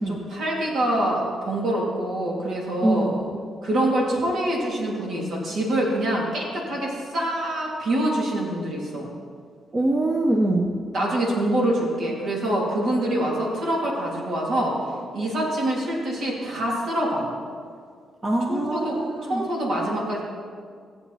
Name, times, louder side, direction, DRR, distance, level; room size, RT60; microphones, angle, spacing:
voice 1, 0.1-3.1 3.6-9.1 10.9-14.8 15.1-17.3 18.5-19.0 19.3-20.2, right 1 dB, 70° right, -3 dB, 3.2 m, -25 dB
voice 2, 2.8-3.4 9.7-10.7 18.2-19.4, right 1 dB, 30° right, 1 dB, 1.1 m, -24 dB
16.5 x 8.2 x 4.3 m, 2.1 s
cardioid pair, 100°, 0 cm